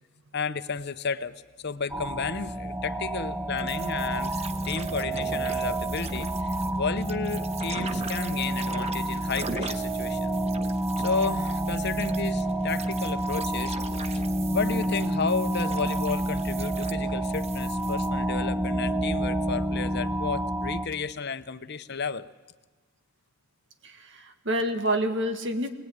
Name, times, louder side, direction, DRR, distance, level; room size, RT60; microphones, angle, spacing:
voice 1, 0.3-10.4 11.0-13.8 14.5-22.3, left 5 dB, 55° left, 13 dB, 0.9 m, -32 dB
sound 1, 1.9-20.9, right 1 dB, 10° right, 1.0 m, -29 dB
sound 2, 3.6-18.1, right 4 dB, 30° right, 1.1 m, -40 dB
voice 2, 23.8-25.7, right 1 dB, 60° right, 6 dB, 2.1 m, -28 dB
25.5 x 19.5 x 9.6 m, 1.3 s
head